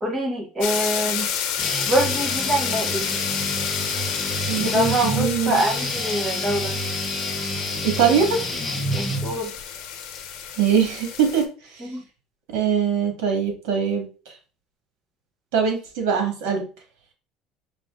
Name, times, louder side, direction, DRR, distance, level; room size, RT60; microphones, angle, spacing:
voice 1, 0.0-1.3 1.9-3.2 4.6-6.8 8.9-9.5 11.8-12.0, right 1 dB, 20° right, 2 dB, 1.0 m, -25 dB
sound 1, 0.6-11.4, left 8 dB, 65° left, 0.8 m, -30 dB
Guitar, 1.6-9.6, equal, 10° left, 0.8 m, -29 dB
voice 2, 4.5-5.6 7.8-8.4 10.6-11.4 12.5-14.1 15.5-16.6, right 7 dB, 85° right, 3 dB, 1.7 m, -22 dB
5.0 x 2.7 x 3.6 m, 0.35 s
cardioid pair, 160°, 0 cm